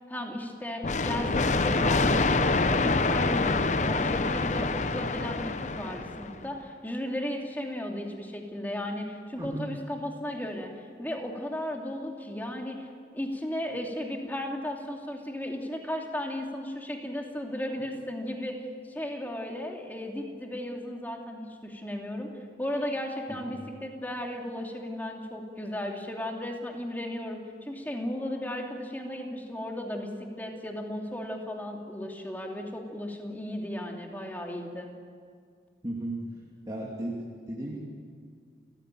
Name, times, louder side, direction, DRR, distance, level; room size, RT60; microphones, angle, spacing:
voice 1, 0.1-10.7 11.0-12.9 13.1-22.3 22.6-30.1 30.4-34.9, left 1 dB, 10° left, 1 dB, 2.7 m, -35 dB
sound 1, 0.8-6.4, left 3 dB, 45° left, 0.8 m, -26 dB
voice 2, 9.4-9.7 23.3-23.6 35.8-36.3 36.6-37.8, right 1 dB, 20° right, -3 dB, 2.7 m, -35 dB
29.0 x 16.0 x 9.1 m, 2.1 s
head